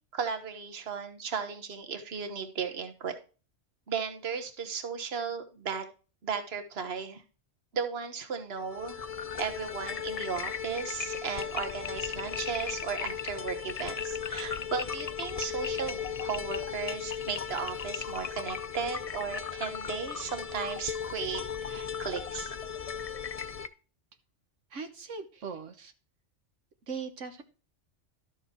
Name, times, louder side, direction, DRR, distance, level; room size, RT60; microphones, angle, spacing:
voice 1, 0.1-3.2 3.9-5.9 6.2-7.2 7.7-9.1 9.4-21.4 21.7-22.5, right 6 dB, 55° right, 7 dB, 1.5 m, -35 dB
sound 1, 8.6-23.7, left 7 dB, 45° left, 0.5 m, -36 dB
voice 2, 24.7-25.9 26.9-27.4, right 5 dB, 85° right, 7 dB, 1.4 m, -39 dB
12.5 x 6.6 x 4.4 m, 0.36 s
omnidirectional pair, 1.2 m